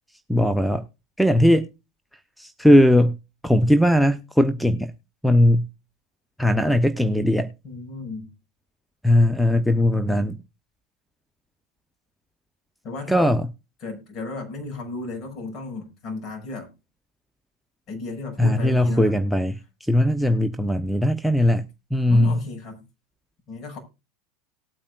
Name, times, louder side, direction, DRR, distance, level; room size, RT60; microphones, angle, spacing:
voice 1, 0.3-0.8 1.2-1.7 2.4-3.2 3.4-4.9 5.2-5.7 6.4-7.5 9.0-10.4 13.1-13.5 18.4-22.4, left 1 dB, ahead, 0.8 m, -19 dB
voice 2, 7.6-8.3 12.8-13.4 13.8-16.7 17.9-19.2 22.1-22.8 23.5-23.8, left 3 dB, 45° left, 6.3 m, -34 dB
19.0 x 8.6 x 2.5 m
figure-of-eight pair, 80°, 0 cm